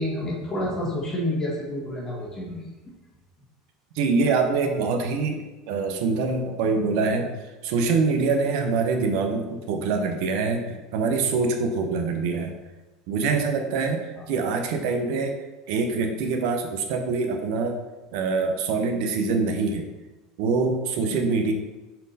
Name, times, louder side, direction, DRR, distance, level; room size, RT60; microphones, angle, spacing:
voice 1, 0.0-2.6, left 1 dB, 25° left, -4 dB, 1.7 m, -29 dB
voice 2, 3.9-12.6 13.1-15.4 15.7-17.8 18.1-19.9 20.4-21.5, right 4 dB, 70° right, 5 dB, 0.9 m, -25 dB
5.1 x 4.4 x 4.1 m, 1.1 s
supercardioid pair, 115°, 3 cm